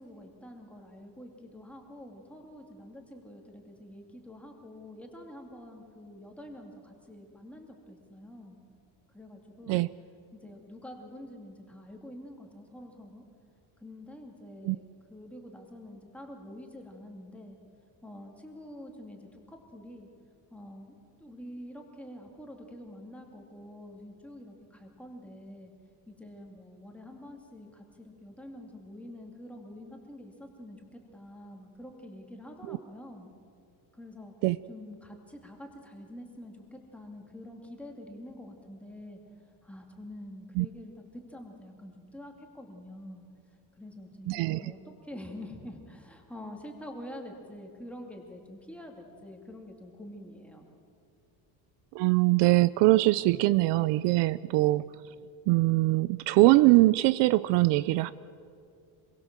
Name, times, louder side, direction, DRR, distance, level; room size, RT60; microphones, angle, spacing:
voice 1, 0.0-8.6 9.1-9.8 10.3-13.2 13.8-17.6 18.0-20.1 20.5-25.7 26.1-33.3 33.9-34.3 34.7-39.2 39.6-43.2 43.8-50.7 52.9-53.0, left 1 dB, 5° left, 1 dB, 2.5 m, -46 dB
voice 2, 44.3-44.6 51.9-54.9 55.5-58.1, right 19 dB, 65° right, 17 dB, 0.6 m, -22 dB
26.5 x 22.5 x 7.5 m, 2.4 s
cardioid pair, 180°, 45 cm